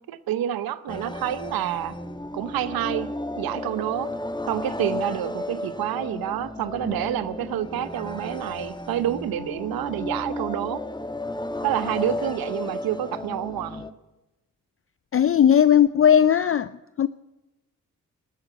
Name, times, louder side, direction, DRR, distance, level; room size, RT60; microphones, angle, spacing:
voice 1, 0.1-1.9 2.3-4.1 4.5-10.8 11.6-13.8, right 12 dB, 80° right, 0.8 m, -28 dB
sound 1, 0.9-13.9, left 1 dB, 10° left, 1.3 m, -33 dB
voice 2, 15.1-16.7 17.0-17.1, left 9 dB, 40° left, 0.5 m, -17 dB
13.5 x 12.5 x 8.2 m
supercardioid pair, 45°, 35 cm